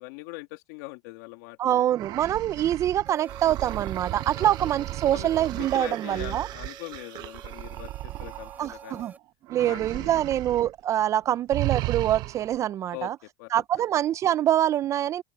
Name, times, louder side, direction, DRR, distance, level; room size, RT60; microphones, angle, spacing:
voice 1, 0.0-1.9 4.4-4.7 5.1-5.3 5.6-9.1 9.6-10.2 12.9-13.1 13.4-13.6, left 22 dB, 80° left, 2.3 m, -42 dB
voice 2, 1.6-6.5 8.6-9.1 9.5-13.2 13.5-15.2, right 11 dB, 35° right, 0.4 m, -25 dB
Angry Beast, 1.9-9.0 9.5-10.7 11.0-11.2 11.5-12.6, right 17 dB, 50° right, 0.8 m, -35 dB
sound 1, 3.0-9.2, right 5 dB, 20° right, 4.2 m, -47 dB
open air
supercardioid pair, 125°, 9 cm